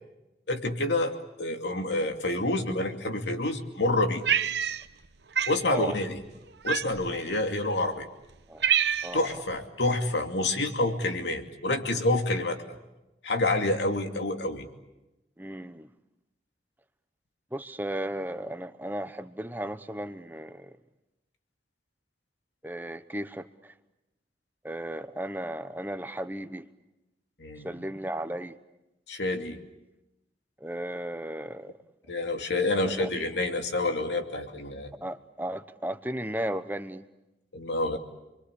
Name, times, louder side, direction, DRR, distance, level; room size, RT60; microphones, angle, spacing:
voice 1, 0.5-4.2 5.5-6.2 6.6-8.1 9.1-12.8 13.2-14.7 27.4-27.7 29.1-29.6 32.1-34.9 37.5-38.0, left 2 dB, 90° left, 5 dB, 2.7 m, -28 dB
Cat, 4.2-5.1 5.3-5.6 6.6-7.2 7.9-8.0 8.3-9.3, right 8 dB, 75° right, 0.9 m, -26 dB
voice 2, 15.4-15.9 17.5-20.7 22.6-23.7 24.6-26.7 27.6-28.6 30.6-31.8 32.7-33.1 35.0-37.1, right 1 dB, 10° right, 10 dB, 0.9 m, -35 dB
28.5 x 23.0 x 8.3 m, 0.96 s
head